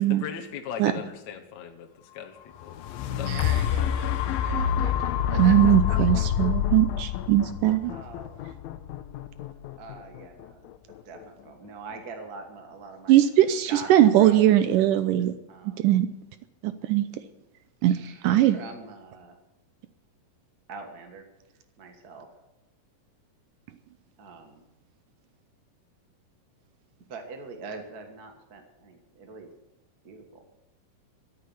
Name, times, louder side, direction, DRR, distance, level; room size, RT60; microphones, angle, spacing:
voice 1, 0.0-3.3, left 8 dB, 60° left, 3 dB, 2.2 m, -39 dB
sound 1, 2.6-10.7 11.2-11.3, left 9 dB, 85° left, 2.5 m, -27 dB
voice 2, 3.1-5.5 5.9-6.2 7.8-8.7 9.8-10.7 11.0-13.2 13.7-13.9 14.2-14.4 15.5-15.9 17.8-19.4 20.7-21.2 21.8-22.3 24.2-24.7 27.1-29.5 30.0-30.4, right 4 dB, 40° right, 4 dB, 1.4 m, -43 dB
voice 3, 5.4-8.0 13.1-15.3 15.8-16.1 16.6-17.1 17.8-17.9 18.2-18.6, right 12 dB, 80° right, 11 dB, 2.1 m, -20 dB
13.5 x 8.7 x 9.6 m, 0.95 s
omnidirectional pair, 4.1 m